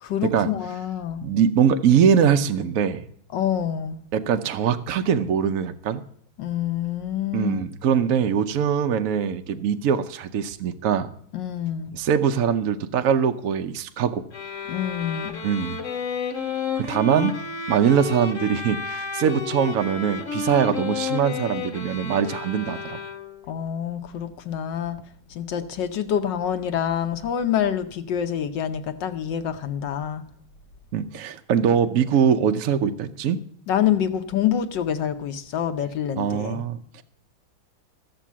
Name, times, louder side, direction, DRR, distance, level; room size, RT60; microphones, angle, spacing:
voice 1, 0.0-1.2 3.3-4.0 6.4-7.7 11.3-11.9 14.7-15.4 23.5-25.0 25.3-30.2 33.7-36.6, left 9 dB, 65° left, 9 dB, 1.4 m, -26 dB
voice 2, 1.2-3.0 4.1-6.0 7.3-11.1 11.9-14.2 15.4-15.8 16.8-17.4 17.7-23.0 30.9-33.4 36.2-37.0, right 7 dB, 70° right, 8 dB, 0.7 m, -22 dB
sound 1, 14.3-23.5, left 5 dB, 40° left, 1.5 m, -31 dB
14.5 x 7.0 x 7.3 m, 0.64 s
omnidirectional pair, 2.3 m